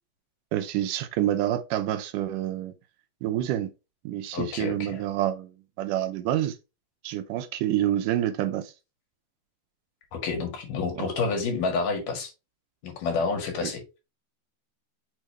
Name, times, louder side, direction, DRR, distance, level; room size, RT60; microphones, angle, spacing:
voice 1, 0.5-2.7 3.2-3.7 4.0-6.6 7.0-8.7 11.0-11.1 13.6-13.7, right 12 dB, 80° right, 2.2 m, -28 dB
voice 2, 4.3-5.0 10.1-12.3 12.8-13.8, left 4 dB, 75° left, 3.4 m, -29 dB
6.4 x 4.9 x 3.2 m
omnidirectional pair, 3.8 m